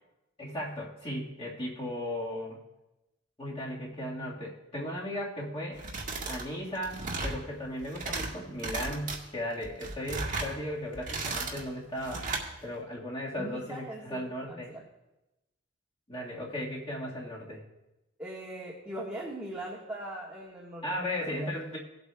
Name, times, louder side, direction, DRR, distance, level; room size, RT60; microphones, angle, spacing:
voice 1, 0.4-2.6 3.4-5.8 6.3-12.3 12.6-14.7 16.1-17.6 20.8-21.8, left 1 dB, 25° left, -5 dB, 1.7 m, -36 dB
sound 1, 5.7-6.4 6.7-7.4 7.8-8.3 8.6-9.2 9.6-10.5 10.9-11.6 12.0-12.5, right 3 dB, 40° right, 1.5 m, -35 dB
voice 2, 13.4-14.8 18.2-21.5, right 1 dB, 5° right, -6 dB, 1.5 m, -40 dB
19.0 x 8.2 x 2.3 m, 0.97 s
head